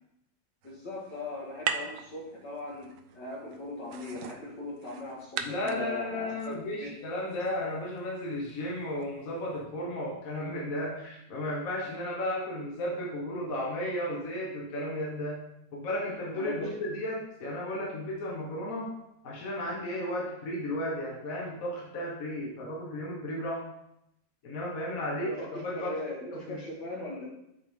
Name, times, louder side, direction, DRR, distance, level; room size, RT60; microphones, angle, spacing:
voice 1, 0.6-6.5 6.8-6.9 16.3-16.7 25.1-27.2, left 2 dB, 75° left, -3 dB, 2.4 m, -39 dB
sound 1, 0.6-9.6, right 7 dB, 70° right, 0.8 m, -42 dB
voice 2, 5.4-15.4 15.7-19.0 19.2-23.7 24.4-26.0 26.3-26.6, left 1 dB, 55° left, -2 dB, 1.6 m, -34 dB
8.5 x 4.5 x 3.6 m, 0.82 s
omnidirectional pair, 1.9 m